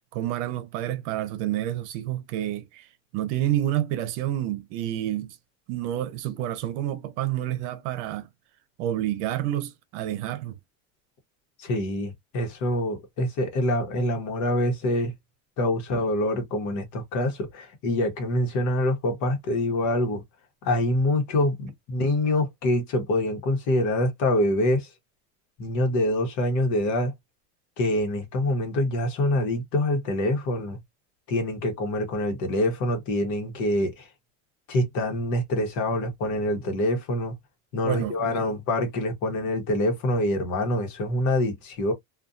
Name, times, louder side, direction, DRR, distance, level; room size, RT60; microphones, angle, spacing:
voice 1, 0.1-5.4 5.7-8.3 8.8-10.5 37.8-38.5, right 12 dB, 70° right, 0.8 m, -29 dB
voice 2, 11.6-15.1 15.6-20.2 20.6-24.9 25.6-27.1 27.8-30.8 31.3-34.1 34.7-37.3 37.7-41.9, left 1 dB, 50° left, 1.1 m, -25 dB
2.6 x 2.4 x 2.4 m
cardioid pair, 155°, 38 cm